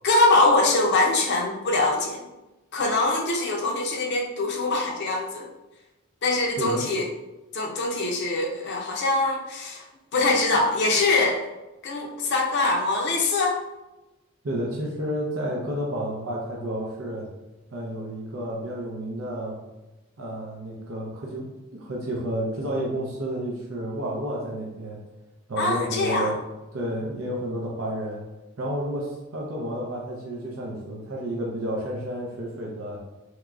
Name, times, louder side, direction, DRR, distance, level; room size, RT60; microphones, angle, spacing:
voice 1, 0.0-2.2 2.7-5.5 6.2-7.0 7.5-9.8 10.1-11.4 11.8-13.6 25.6-26.3, left 2 dB, 50° left, 0 dB, 0.5 m, -23 dB
voice 2, 14.4-17.3 17.7-19.6 20.2-21.5 21.7-25.0 25.5-26.4 26.7-28.3 28.6-33.0, right 1 dB, 70° right, -3 dB, 0.6 m, -31 dB
3.6 x 3.0 x 2.3 m, 1.0 s
head